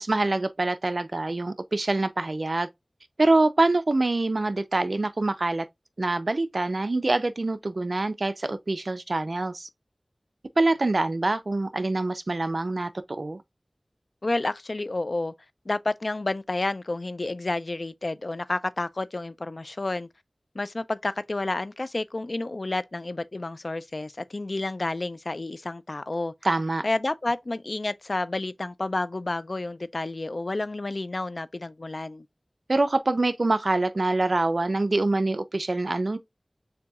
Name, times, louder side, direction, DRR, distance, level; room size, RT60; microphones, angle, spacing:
voice 1, 0.0-2.7 3.2-5.7 6.0-9.7 10.6-13.4 26.4-26.8 32.7-36.2, right 2 dB, 65° right, 0.4 m, -25 dB
voice 2, 14.2-15.3 15.7-20.1 20.5-26.3 26.8-32.3, left 2 dB, 60° left, 0.3 m, -30 dB
6.7 x 2.7 x 2.3 m
wide cardioid pair, 60°, 0 cm